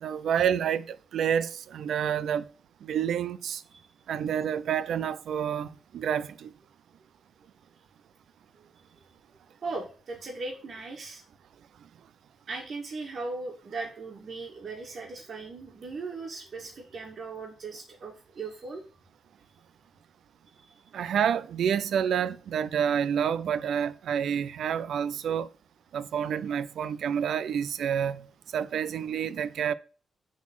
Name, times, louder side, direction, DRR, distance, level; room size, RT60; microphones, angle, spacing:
voice 1, 0.0-2.5 2.8-3.6 4.1-5.7 5.9-6.5 20.9-25.5 25.9-28.2 28.5-29.7, right 8 dB, 75° right, 0.5 m, -28 dB
voice 2, 9.6-11.2 12.5-18.8 20.6-20.7, right 3 dB, 45° right, 1.9 m, -38 dB
7.3 x 4.1 x 6.1 m
wide cardioid pair, 145°, 0 cm